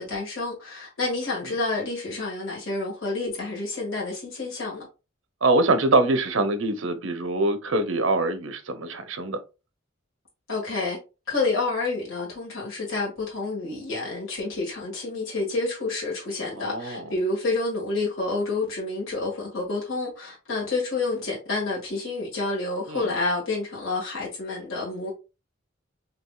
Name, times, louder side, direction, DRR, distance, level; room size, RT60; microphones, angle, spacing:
voice 1, 0.0-4.9 10.5-11.0 11.3-25.1, left 3 dB, 75° left, 1.7 m, -29 dB
voice 2, 5.4-9.4 16.6-17.1 22.9-23.1, right 2 dB, 70° right, 0.7 m, -24 dB
6.0 x 2.8 x 2.3 m
head